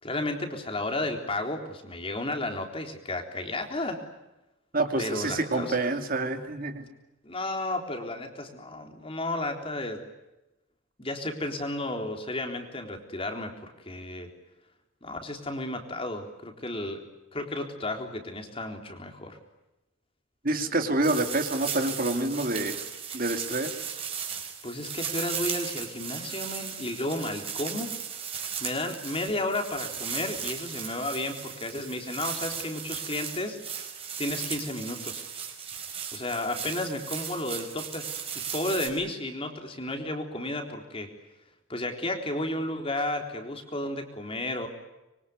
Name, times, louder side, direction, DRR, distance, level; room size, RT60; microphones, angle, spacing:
voice 1, 0.0-4.0 5.0-6.0 7.2-10.0 11.0-14.3 15.0-17.1 17.3-19.4 24.6-27.9 28.6-33.6 34.2-35.2 36.1-38.1 38.5-41.1 41.7-44.7, left 1 dB, 25° left, 4 dB, 3.8 m, -33 dB
voice 2, 4.7-6.8 20.4-22.8 23.1-23.7, right 2 dB, 45° right, 6 dB, 2.7 m, -27 dB
sound 1, 21.0-38.9, right 7 dB, 30° right, 5.0 m, -36 dB
25.5 x 23.5 x 9.6 m, 0.99 s
head